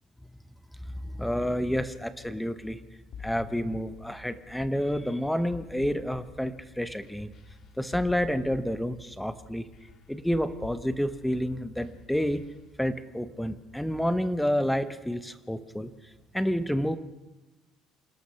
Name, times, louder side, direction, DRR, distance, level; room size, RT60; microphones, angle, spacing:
voice 1, 1.0-2.8 3.2-7.3 7.8-9.7 10.1-12.4 12.8-15.9 16.3-17.0, equal, ahead, 12 dB, 0.9 m, -29 dB
sound 1, 3.1-12.6, left 5 dB, 45° left, 2.3 m, -47 dB
27.0 x 18.0 x 5.7 m, 1.0 s
cardioid pair, 155°, 0 cm